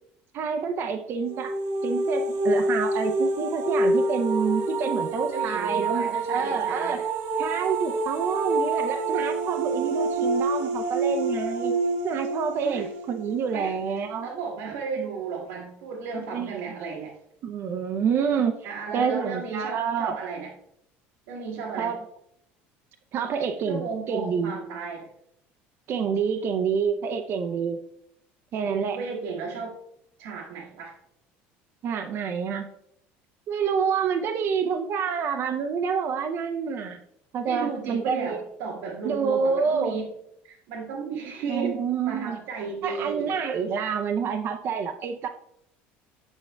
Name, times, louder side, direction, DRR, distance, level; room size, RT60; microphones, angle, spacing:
voice 1, 0.3-1.5 1.8-7.0 7.4-11.7 12.0-14.3 16.3-16.6 17.4-18.6 18.9-20.2 21.8-22.0 23.1-24.5 25.9-27.8 28.5-29.0 31.8-32.7 33.5-37.0 37.3-38.4 39.0-40.0 41.5-42.4 42.8-45.3, right 6 dB, 50° right, 6 dB, 0.5 m, -28 dB
sound 1, 1.2-14.1, right 2 dB, 70° right, 1.0 m, -27 dB
voice 2, 5.3-7.1 12.6-12.9 13.5-13.8 14.2-17.1 18.6-20.5 21.3-21.9 23.7-25.1 28.6-29.7 30.2-30.9 37.5-40.1 40.4-41.8 42.1-43.4, right 5 dB, 90° right, -5 dB, 1.3 m, -34 dB
7.0 x 6.7 x 2.2 m, 0.73 s
supercardioid pair, 110°, 5 cm